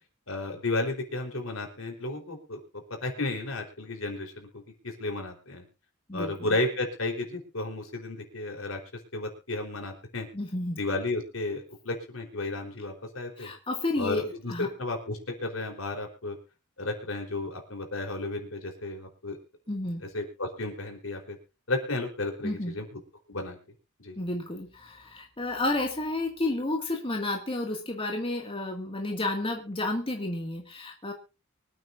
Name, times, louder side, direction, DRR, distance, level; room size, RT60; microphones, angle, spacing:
voice 1, 0.3-2.6 3.0-5.6 6.1-8.8 9.1-10.3 10.8-13.5 14.0-16.4 16.8-19.4 20.0-21.4 21.7-22.9 23.3-23.6 24.0-24.2, left 2 dB, 70° left, 3 dB, 4.0 m, -33 dB
voice 2, 6.1-6.5 10.3-10.8 13.4-14.7 19.7-20.0 22.4-22.8 24.2-31.1, left 2 dB, 25° left, 1 dB, 2.1 m, -31 dB
24.5 x 9.3 x 2.6 m, 0.31 s
head